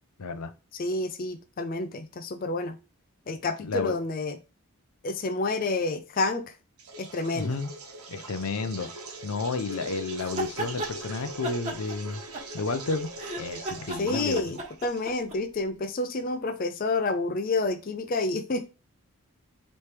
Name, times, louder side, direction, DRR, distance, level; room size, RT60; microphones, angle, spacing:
voice 1, 0.2-0.5 3.6-4.0 7.3-7.7 8.1-8.9 9.2-12.2 12.5-13.1 13.3-14.6, left 3 dB, 85° left, 9 dB, 0.6 m, -31 dB
voice 2, 0.8-2.8 3.3-4.4 5.0-6.4 7.0-7.5 14.0-18.7, left 3 dB, 40° left, 8 dB, 0.4 m, -29 dB
sound 1, 6.8-15.3, right 2 dB, 85° right, 1.1 m, -41 dB
sound 2, 10.2-10.9 11.4-12.8 13.2-15.4, right 2 dB, 30° right, 1.1 m, -35 dB
4.3 x 3.2 x 3.3 m, 0.30 s
head